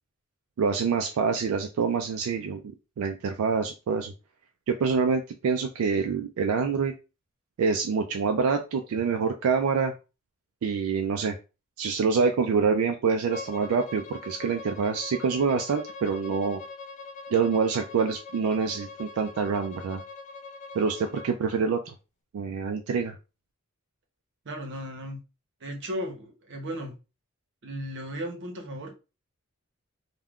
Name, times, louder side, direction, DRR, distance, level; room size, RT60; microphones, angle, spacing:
voice 1, 0.6-2.6 3.0-4.1 4.7-6.9 7.6-9.9 10.6-11.4 11.8-16.6 17.3-20.0 20.7-21.9 22.3-23.2, right 5 dB, 80° right, 4 dB, 0.3 m, -26 dB
Bowed string instrument, 13.3-21.3, left 4 dB, 35° left, 0.3 m, -42 dB
voice 2, 24.4-25.2 25.6-26.9 27.6-29.0, equal, 55° right, 3 dB, 0.7 m, -35 dB
3.5 x 2.2 x 2.3 m, 0.30 s
head